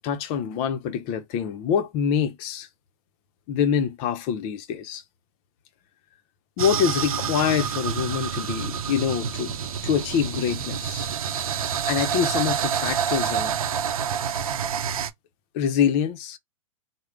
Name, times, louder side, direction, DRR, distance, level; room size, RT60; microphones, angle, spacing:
voice 1, 0.0-2.7 3.5-5.0 6.6-9.6 9.8-11.1 11.9-13.6 15.5-16.4, left 8 dB, 40° left, 0.6 m, -25 dB
sound 1, 6.6-15.1, right 7 dB, 90° right, 0.6 m, -28 dB
3.5 x 2.1 x 3.2 m
hypercardioid pair, 130°, 18 cm